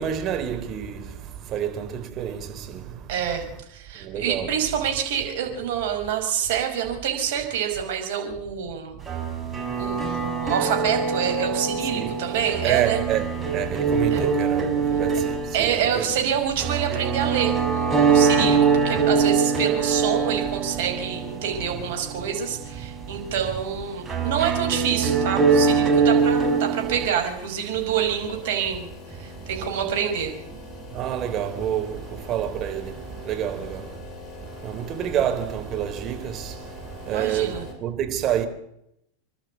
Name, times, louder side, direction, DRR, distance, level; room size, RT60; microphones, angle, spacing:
voice 1, 0.0-3.6 3.9-4.6 9.5-10.3 11.8-12.2 12.6-16.2 21.7-21.8 23.1-23.6 26.8-27.0 29.1-30.0 30.5-34.1 34.4-38.5, right 9 dB, 40° right, 3.6 m, -29 dB
voice 2, 3.1-9.0 9.8-13.0 14.1-14.2 15.5-30.3 37.1-37.6, right 8 dB, 65° right, 5.2 m, -27 dB
sound 1, 9.1-27.1, right 5 dB, 15° right, 4.8 m, -23 dB
sound 2, 26.2-37.7, left 3 dB, 25° left, 7.2 m, -43 dB
27.0 x 12.0 x 8.3 m
hypercardioid pair, 95°, 0 cm